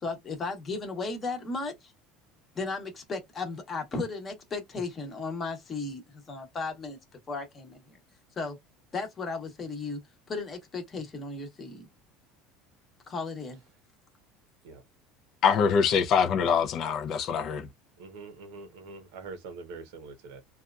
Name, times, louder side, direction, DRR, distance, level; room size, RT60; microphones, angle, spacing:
voice 1, 0.0-1.9 2.5-7.0 7.3-8.0 8.4-8.6 8.9-10.0 10.3-11.8 13.1-13.6, left 3 dB, 20° left, 0.9 m, -35 dB
voice 2, 15.4-17.7, left 6 dB, 40° left, 0.4 m, -24 dB
voice 3, 18.0-20.4, right 4 dB, 80° right, 0.8 m, -44 dB
2.7 x 2.3 x 2.3 m
cardioid pair, 165°, 0 cm